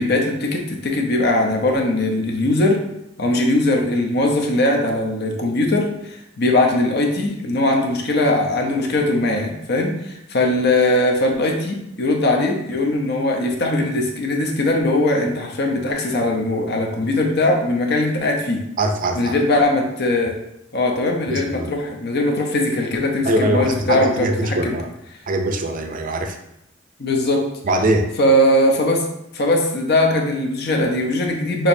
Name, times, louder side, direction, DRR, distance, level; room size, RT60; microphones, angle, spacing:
voice 1, 0.0-2.8 3.2-18.6 19.1-20.4 20.7-24.8 27.0-27.4 28.2-29.1 29.3-31.7, left 1 dB, 55° left, 2 dB, 0.7 m, -20 dB
voice 2, 18.8-19.3 21.3-21.7 23.2-24.9 25.3-26.4 27.6-28.1, right 1 dB, 45° right, 5 dB, 0.5 m, -22 dB
6.3 x 2.9 x 2.7 m, 0.82 s
head